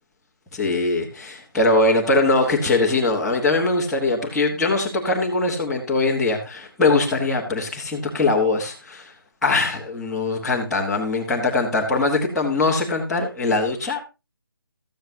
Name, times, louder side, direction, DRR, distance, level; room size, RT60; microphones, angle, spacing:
voice 1, 0.5-9.1 9.4-14.0, left 3 dB, ahead, -12 dB, 1.2 m, -21 dB
14.0 x 8.7 x 2.8 m, 0.26 s
figure-of-eight pair, 170°, 12 cm